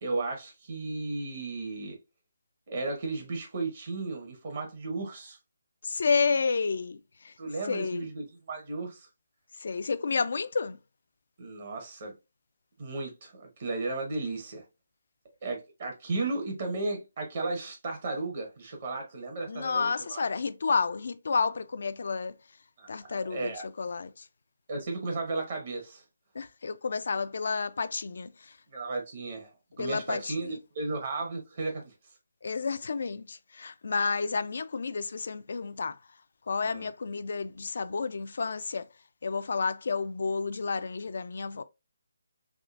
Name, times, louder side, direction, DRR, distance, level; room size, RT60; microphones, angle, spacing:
voice 1, 0.0-2.0 2.7-5.4 7.4-9.1 11.4-12.1 12.8-14.6 15.4-20.3 22.8-23.6 24.7-26.0 28.7-29.5 29.8-31.9 36.6-36.9, right 3 dB, 45° right, 1.0 m, -34 dB
voice 2, 5.8-7.0 7.2-7.3 7.7-8.1 9.6-10.8 19.5-22.3 22.9-23.5 23.8-24.1 26.4-28.3 29.8-30.3 32.4-36.0 36.5-38.9 39.2-41.6, left 5 dB, 55° left, 0.3 m, -30 dB
3.5 x 2.4 x 2.4 m
figure-of-eight pair, 145°, 0 cm